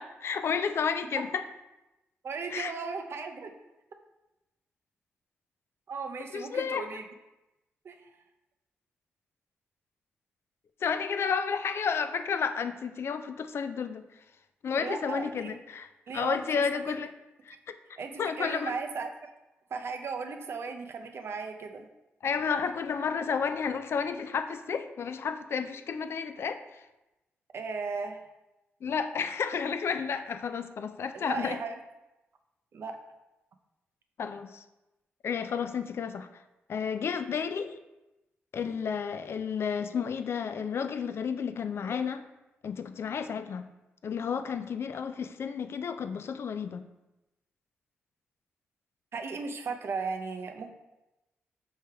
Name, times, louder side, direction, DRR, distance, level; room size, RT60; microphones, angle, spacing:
voice 1, 0.0-1.4 2.5-2.7 6.3-7.0 10.8-14.0 14.6-15.9 16.1-17.1 17.5-17.6 18.2-18.7 22.2-26.8 28.8-31.6 34.2-34.6 35.2-36.3 36.7-37.8 38.5-42.2 42.6-43.6 44.0-46.8, left 6 dB, 60° left, 10 dB, 0.3 m, -31 dB
voice 2, 2.2-3.5 5.9-7.0 7.8-8.1 14.8-15.6 16.1-16.9 18.0-19.3 19.7-21.9 27.5-28.2 31.1-31.7 32.7-32.9 49.1-50.7, right 4 dB, 60° right, 5 dB, 0.5 m, -36 dB
4.5 x 3.3 x 3.4 m, 0.99 s
supercardioid pair, 55°, 5 cm